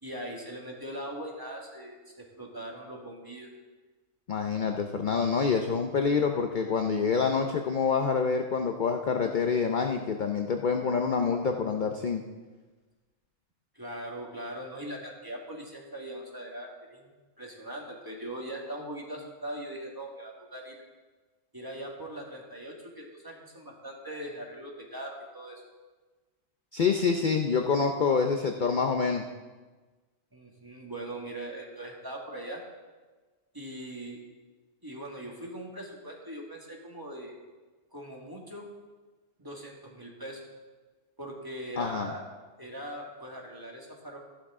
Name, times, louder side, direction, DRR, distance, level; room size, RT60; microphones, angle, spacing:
voice 1, 0.0-3.5 13.7-17.1 17.4-20.8 21.5-25.6 30.3-32.6 33.5-34.2 34.8-37.3 37.9-38.7 39.4-40.4 41.2-42.2 42.6-44.2, right 1 dB, 15° right, -1 dB, 1.8 m, -40 dB
voice 2, 4.3-12.2 26.7-29.2 41.8-42.1, left 5 dB, 45° left, 4 dB, 0.7 m, -27 dB
14.0 x 11.0 x 3.7 m, 1.3 s
omnidirectional pair, 1.4 m